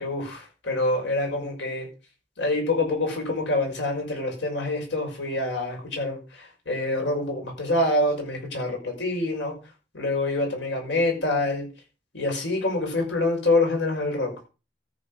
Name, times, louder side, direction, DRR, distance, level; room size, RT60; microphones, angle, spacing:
voice 1, 0.0-1.9 2.4-9.5 9.9-11.7 12.1-14.3, left 2 dB, 75° left, 2 dB, 6.0 m, -26 dB
13.5 x 6.9 x 6.3 m, 0.33 s
head